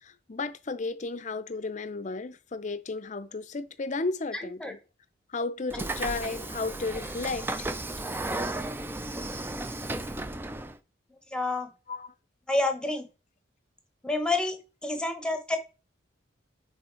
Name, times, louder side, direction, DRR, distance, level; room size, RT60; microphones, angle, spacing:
voice 1, 0.0-4.8 5.3-7.7 11.9-12.1, left 3 dB, 40° left, 0.5 m, -33 dB
voice 2, 4.3-4.7 11.3-11.7 12.5-13.0 14.0-15.6, left 2 dB, 5° left, 0.9 m, -29 dB
Train / Sliding door, 5.7-10.8, right 2 dB, 10° right, 0.4 m, -34 dB
6.3 x 4.1 x 4.4 m
head